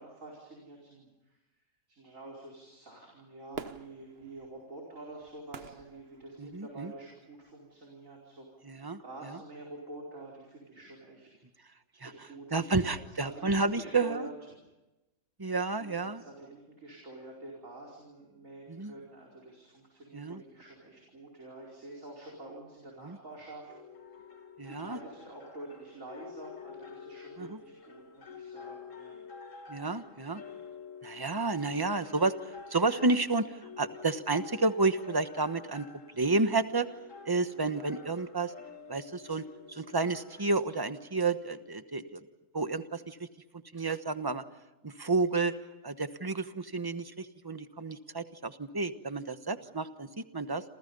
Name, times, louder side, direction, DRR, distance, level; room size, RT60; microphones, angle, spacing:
voice 1, 0.0-1.4 1.9-11.3 12.0-14.6 15.8-23.7 24.7-29.2 37.5-37.9 49.5-49.8, right 2 dB, 85° right, -2 dB, 5.2 m, -48 dB
Fireworks, 3.5-6.9 7.4-7.5, right 5 dB, 50° right, 1.4 m, -47 dB
voice 2, 6.4-6.9 8.7-9.0 12.0-12.1 12.5-14.3 15.4-16.2 18.7-18.9 20.1-20.4 23.0-23.2 24.6-25.0 27.4-27.6 29.7-30.4 31.0-32.3 32.7-35.9 36.1-36.9 37.2-38.5 38.9-42.2 42.5-43.3 43.7-44.4 44.8-45.5 45.8-50.6, right 3 dB, 20° right, 10 dB, 1.1 m, -31 dB
sound 1, 23.7-40.7, left 5 dB, 75° left, 2.5 m, -49 dB
28.5 x 28.0 x 5.5 m, 1.0 s
omnidirectional pair, 1.3 m